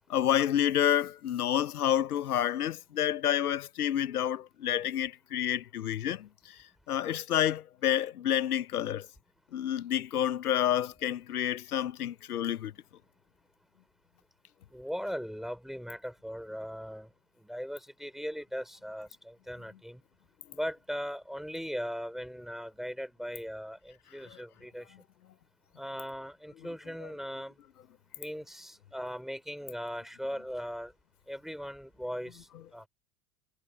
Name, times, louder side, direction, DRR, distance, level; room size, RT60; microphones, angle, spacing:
voice 1, 0.1-6.3 6.9-9.1 9.5-12.7, left 11 dB, 75° left, 1.2 m, -29 dB
voice 2, 14.7-17.1 17.4-20.0 20.5-24.9 25.8-27.6 28.2-30.9 31.3-32.9, equal, ahead, 5.0 m, -39 dB
figure-of-eight pair, 75°, 45 cm